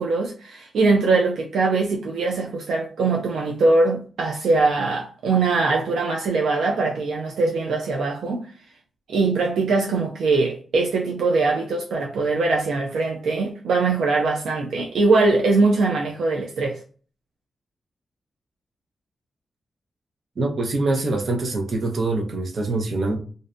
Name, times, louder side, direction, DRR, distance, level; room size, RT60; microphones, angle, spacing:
voice 1, 0.0-8.5 9.1-16.8, right 3 dB, 90° right, 0.3 m, -22 dB
voice 2, 20.4-23.2, right 2 dB, 60° right, 0.7 m, -24 dB
2.5 x 2.1 x 2.4 m
cardioid pair, 65°, 0 cm